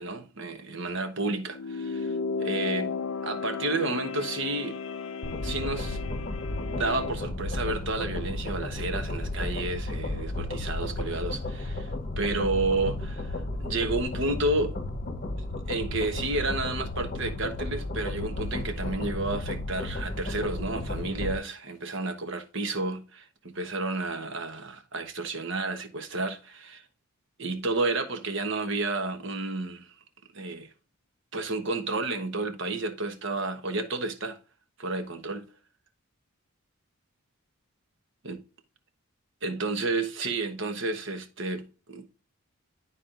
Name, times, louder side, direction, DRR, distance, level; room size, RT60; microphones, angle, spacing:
voice 1, 0.0-4.8 5.4-6.0 6.7-14.7 15.7-26.8 27.4-29.9 30.3-30.7 31.3-34.4 34.8-35.5 38.2-38.4 39.4-42.1, right 2 dB, 60° right, 1.2 m, -31 dB
sound 1, 1.5-7.2, left 5 dB, 60° left, 0.5 m, -34 dB
sound 2, 5.2-21.4, left 2 dB, 40° left, 1.0 m, -33 dB
12.0 x 4.2 x 2.5 m
head